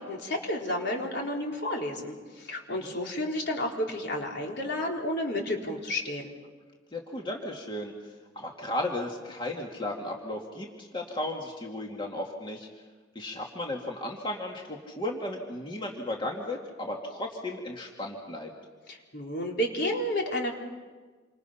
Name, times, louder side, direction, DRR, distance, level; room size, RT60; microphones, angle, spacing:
voice 1, 0.0-6.3 18.9-20.5, left 1 dB, 60° left, 0 dB, 4.0 m, -31 dB
voice 2, 2.7-3.0 6.9-12.7 13.1-18.5, left 1 dB, 25° left, 0 dB, 2.2 m, -35 dB
28.0 x 26.0 x 5.7 m, 1.4 s
head